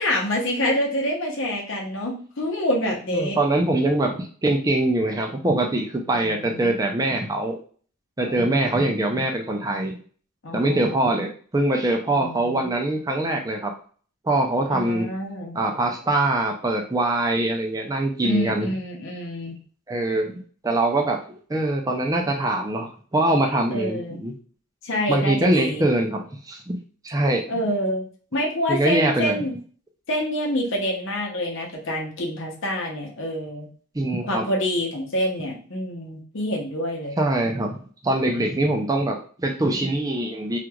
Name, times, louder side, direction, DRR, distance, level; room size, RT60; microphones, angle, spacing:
voice 1, 0.0-3.4 6.1-6.7 8.2-8.9 10.4-11.2 12.1-12.7 14.7-15.6 18.2-19.6 23.7-24.2 24.8-25.9 27.5-28.1 28.3-29.6 30.1-33.7 34.3-37.2, left 1 dB, 65° left, -1 dB, 0.7 m, -27 dB
voice 2, 3.1-7.6 8.2-10.0 10.5-13.7 14.2-15.1 15.5-18.7 19.9-21.2 21.5-24.3 25.1-26.8 27.0-27.5 28.7-29.4 33.9-34.5 37.2-40.6, right 1 dB, 15° right, 2 dB, 0.4 m, -23 dB
3.0 x 2.4 x 2.2 m, 0.43 s
head